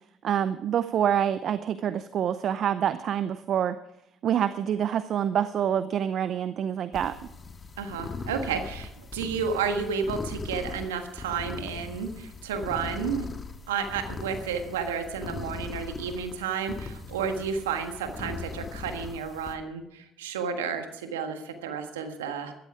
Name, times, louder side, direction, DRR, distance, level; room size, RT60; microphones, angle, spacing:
voice 1, 0.2-3.8 4.2-7.1, right 9 dB, 55° right, 13 dB, 0.6 m, -26 dB
sound 1, 6.9-19.6, left 4 dB, 35° left, 1.7 m, -40 dB
voice 2, 7.8-13.3 13.7-22.5, right 6 dB, 90° right, 6 dB, 1.5 m, -31 dB
15.0 x 13.5 x 4.9 m, 0.84 s
hypercardioid pair, 60°, 0 cm